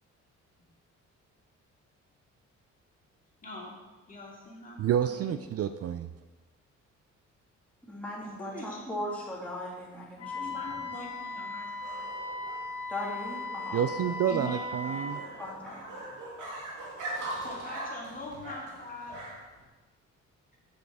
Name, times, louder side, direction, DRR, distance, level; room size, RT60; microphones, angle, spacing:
voice 1, 3.4-3.7 4.1-5.4 8.2-8.8 10.2-11.7 12.0-12.1 14.3-15.5 17.1-19.2, left 2 dB, 25° left, -3 dB, 2.9 m, -43 dB
voice 2, 4.8-6.1 13.7-15.2, right 9 dB, 55° right, 10 dB, 0.5 m, -29 dB
voice 3, 7.9-10.8 12.9-13.8 15.4-15.8, left 1 dB, 5° left, -5 dB, 2.9 m, -38 dB
Wind instrument woodwind instrument, 10.2-15.2, left 2 dB, 65° left, 2.1 m, -37 dB
sound 1, 10.2-19.6, right 2 dB, 80° right, 2.3 m, -42 dB
7.9 x 6.8 x 4.8 m, 1.2 s
cardioid pair, 90°, 30 cm